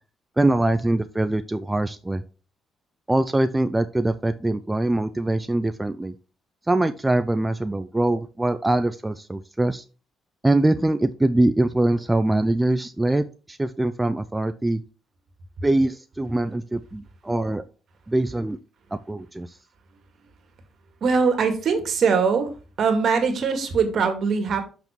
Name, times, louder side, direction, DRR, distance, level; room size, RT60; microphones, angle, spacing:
voice 1, 0.4-2.2 3.1-6.1 6.7-9.8 10.4-14.8 15.6-17.6 18.1-18.6 19.1-19.6, right 2 dB, 15° right, 10 dB, 0.5 m, -23 dB
voice 2, 21.0-22.5 22.8-24.6, right 5 dB, 60° right, 7 dB, 2.1 m, -21 dB
6.8 x 6.0 x 4.5 m, 0.35 s
cardioid pair, 85°, 0 cm